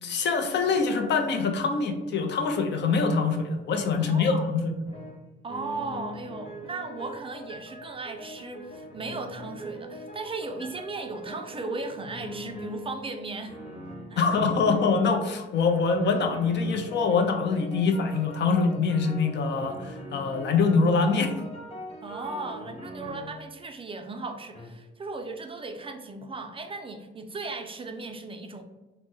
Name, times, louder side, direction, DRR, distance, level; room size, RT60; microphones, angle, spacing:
voice 1, 0.0-4.6 14.2-21.3, left 4 dB, 60° left, 5 dB, 0.5 m, -24 dB
voice 2, 4.0-4.5 5.4-13.6 14.1-14.3 22.0-28.6, right 3 dB, 25° right, 6 dB, 0.3 m, -36 dB
sound 1, 4.9-5.2 5.5-13.1 13.5-15.2 15.5-23.5 24.5-24.7, equal, 30° left, 0.8 m, -42 dB
3.0 x 2.1 x 3.4 m, 1.1 s
cardioid pair, 90°, 20 cm